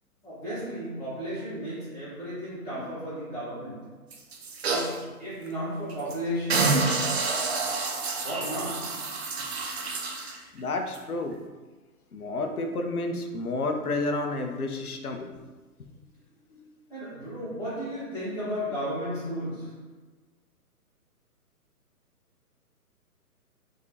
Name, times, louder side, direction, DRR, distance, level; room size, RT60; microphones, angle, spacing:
voice 1, 0.2-4.0 4.7-6.9 8.2-9.2 16.9-19.8, equal, 5° left, -19 dB, 0.6 m, -34 dB
sound 1, 4.1-5.0 5.5-5.6 5.9-6.2 6.5-10.4 10.9-11.0, right 3 dB, 45° right, 0.6 m, -28 dB
voice 2, 10.5-11.4 12.1-15.3 16.5-16.7, left 2 dB, 70° left, 5 dB, 0.8 m, -31 dB
4.8 x 3.6 x 2.8 m, 1.2 s
figure-of-eight pair, 135°, 46 cm